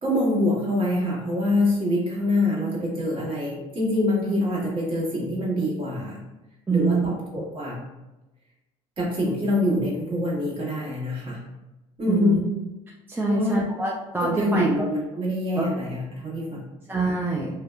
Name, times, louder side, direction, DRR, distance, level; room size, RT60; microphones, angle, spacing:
voice 1, 0.0-6.2 6.7-7.8 9.0-11.4 12.0-12.5 13.2-13.6 14.2-16.7, left 1 dB, 40° right, -5 dB, 1.2 m, -25 dB
voice 2, 6.7-7.1 12.1-12.4 13.2-14.7 15.6-15.7 16.9-17.5, right 3 dB, 15° right, -3 dB, 0.4 m, -24 dB
2.7 x 2.1 x 2.3 m, 1.0 s
supercardioid pair, 80°, 14 cm